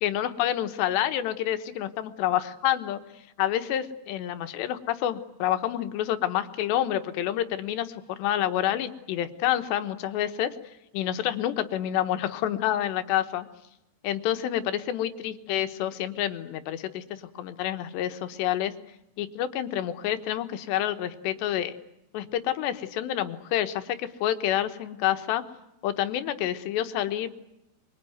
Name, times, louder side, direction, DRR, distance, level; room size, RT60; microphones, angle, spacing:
voice 1, 0.0-3.0 3.4-10.6 10.9-13.5 14.0-18.7 19.2-21.8 22.1-25.4 25.8-27.3, left 11 dB, 80° left, 10 dB, 3.3 m, -28 dB
24.0 x 22.5 x 9.3 m, 0.86 s
omnidirectional pair, 4.9 m